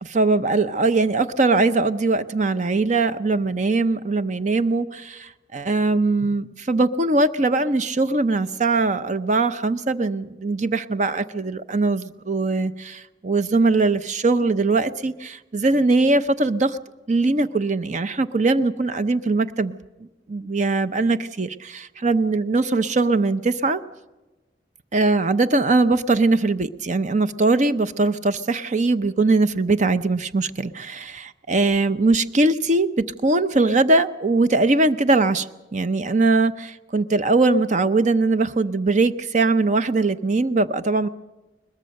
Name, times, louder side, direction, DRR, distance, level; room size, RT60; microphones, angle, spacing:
voice 1, 0.0-16.8 17.1-19.8 20.3-23.8 24.9-35.5 35.7-41.1, right 3 dB, 40° right, 13 dB, 0.6 m, -21 dB
22.0 x 20.5 x 6.5 m, 1.1 s
head